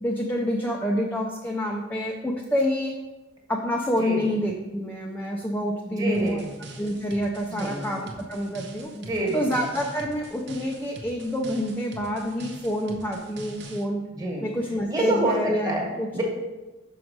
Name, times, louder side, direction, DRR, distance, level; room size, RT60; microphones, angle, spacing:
voice 1, 0.0-2.9 3.5-6.4 6.8-8.9 9.3-14.0 14.4-15.7 16.0-16.1, equal, 10° left, 0 dB, 0.5 m, -27 dB
voice 2, 5.8-6.5 7.5-7.8 8.9-9.5 14.1-14.5 14.9-15.8 16.1-16.2, right 1 dB, 20° right, -1 dB, 1.4 m, -27 dB
sound 1, 6.1-13.8, right 2 dB, 55° right, 0.8 m, -43 dB
6.2 x 5.1 x 4.6 m, 1.2 s
head